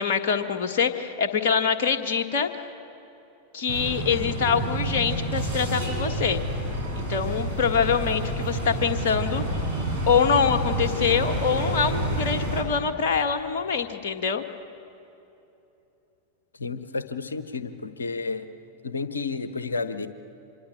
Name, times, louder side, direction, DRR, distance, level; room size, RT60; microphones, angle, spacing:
voice 1, 0.0-2.5 3.5-6.4 6.9-9.4 10.1-14.4, left 6 dB, 50° left, 7 dB, 1.6 m, -24 dB
sound 1, 3.7-12.6, right 1 dB, 75° right, 6.1 m, -29 dB
voice 2, 16.6-18.4 18.8-20.1, left 4 dB, 75° left, 12 dB, 1.1 m, -31 dB
26.0 x 23.0 x 8.5 m, 3.0 s
figure-of-eight pair, 90°, 0 cm